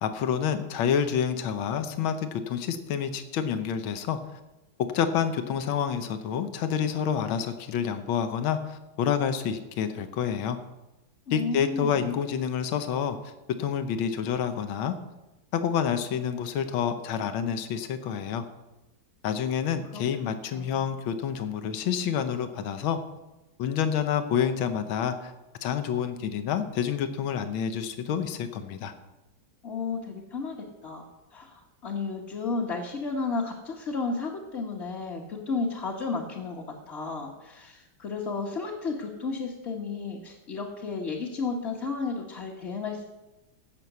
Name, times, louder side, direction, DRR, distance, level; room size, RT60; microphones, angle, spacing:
voice 1, 0.0-4.2 4.9-10.6 11.3-13.2 13.6-14.9 15.5-18.4 19.2-23.0 23.6-25.3 25.6-28.9, left 8 dB, 80° left, 9 dB, 1.7 m, -28 dB
voice 2, 11.3-12.0 19.9-20.0 20.5-20.8 29.6-43.0, left 4 dB, 35° left, -3 dB, 1.3 m, -33 dB
16.0 x 6.1 x 6.8 m, 1.0 s
omnidirectional pair, 2.2 m